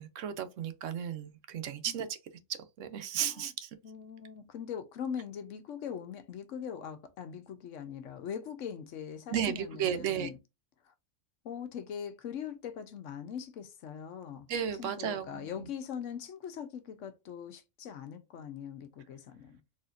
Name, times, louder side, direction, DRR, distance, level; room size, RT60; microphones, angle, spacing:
voice 1, 0.0-2.1 2.8-3.7 9.3-10.3 14.5-15.5, right 9 dB, 80° right, 1.0 m, -34 dB
voice 2, 3.2-3.5 3.8-10.4 10.8-10.9 11.4-14.5 14.8-19.6, left 8 dB, 80° left, 1.0 m, -41 dB
4.2 x 2.8 x 2.5 m
omnidirectional pair, 1.3 m